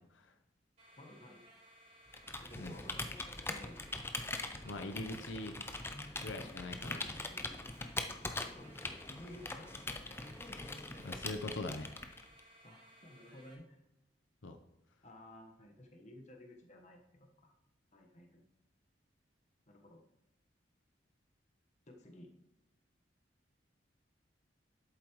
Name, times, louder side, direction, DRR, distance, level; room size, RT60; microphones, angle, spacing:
sound 1, 0.8-13.5, right 1 dB, 40° right, 3.8 m, -61 dB
voice 1, 1.0-1.4 2.4-3.1 3.4-3.8 8.6-8.7 9.1-10.2 12.6-13.8 15.0-17.5 17.9-18.5 19.7-20.1 21.9-22.3, left 1 dB, 40° left, 2 dB, 1.3 m, -54 dB
Computer keyboard, 2.1-12.4, left 2 dB, 15° left, 0.5 m, -42 dB
voice 2, 4.6-5.6 6.2-7.0 11.0-11.9 14.4-14.6, left 2 dB, 85° left, 6 dB, 0.8 m, -42 dB
11.0 x 8.2 x 3.1 m, 0.87 s
head